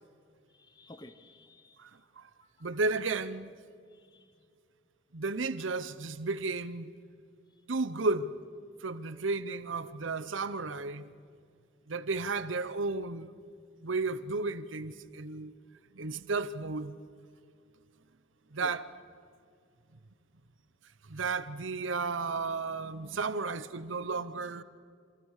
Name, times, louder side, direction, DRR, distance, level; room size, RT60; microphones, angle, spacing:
voice 1, 0.5-1.8 2.6-2.8 3.9-4.3 18.6-18.7, left 1 dB, 20° left, 1.1 m, -52 dB
voice 2, 1.8-2.3 2.6-3.5 5.1-6.9 7.7-8.3 8.8-11.1 11.9-13.3 13.8-15.5 15.9-17.0 18.5-18.8 21.1-24.6, right 3 dB, 90° right, 0.9 m, -33 dB
27.5 x 27.0 x 6.6 m
head